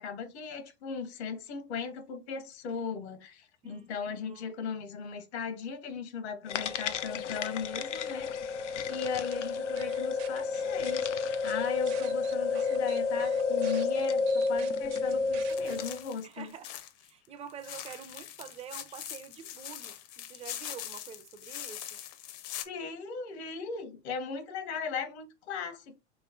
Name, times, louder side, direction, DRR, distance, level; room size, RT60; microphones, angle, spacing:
voice 1, 0.0-16.5 22.6-25.9, left 5 dB, 65° left, 1.0 m, -38 dB
voice 2, 3.6-4.5 11.8-12.0 16.2-16.7 17.0-22.0, right 7 dB, 20° right, 0.4 m, -47 dB
sound 1, 6.5-16.0, left 4 dB, 90° left, 0.5 m, -31 dB
sound 2, 8.9-9.4 9.8-11.1 11.4-15.8, right 10 dB, 65° right, 0.8 m, -49 dB
sound 3, 15.4-17.1 17.5-22.6, left 11 dB, 50° left, 0.7 m, -42 dB
3.1 x 2.9 x 3.6 m
hypercardioid pair, 100°, 35 cm